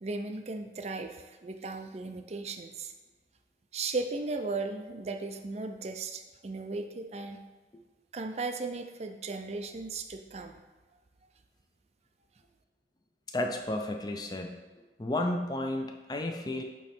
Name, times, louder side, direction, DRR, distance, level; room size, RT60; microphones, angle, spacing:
voice 1, 0.0-2.9 3.7-7.4 8.1-10.6, right 3 dB, 35° right, 6 dB, 0.4 m, -36 dB
voice 2, 13.3-14.5 15.0-16.6, left 1 dB, 20° left, 3 dB, 0.5 m, -32 dB
8.5 x 3.1 x 4.3 m, 1.3 s
head